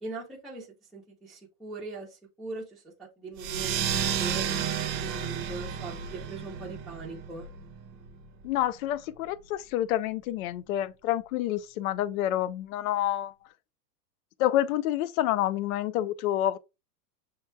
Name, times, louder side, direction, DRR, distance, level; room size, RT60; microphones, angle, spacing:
voice 1, 0.0-3.8 4.2-4.5 5.0-7.5, right 3 dB, ahead, 0.7 m, -41 dB
sound 1, 3.4-8.5, right 8 dB, 35° right, 0.8 m, -32 dB
voice 2, 8.4-13.3 14.4-16.6, left 13 dB, 60° left, 0.6 m, -28 dB
7.1 x 3.0 x 2.3 m
supercardioid pair, 145°, 48 cm